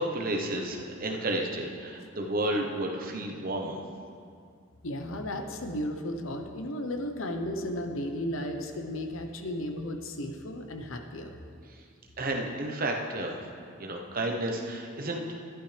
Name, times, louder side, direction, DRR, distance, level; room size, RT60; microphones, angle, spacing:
voice 1, 0.0-3.8 12.2-13.4 13.8-15.4, right 1 dB, 45° right, 2 dB, 1.1 m, -31 dB
voice 2, 4.8-11.3, left 1 dB, 80° left, 5 dB, 0.9 m, -34 dB
12.0 x 11.0 x 3.4 m, 2.3 s
head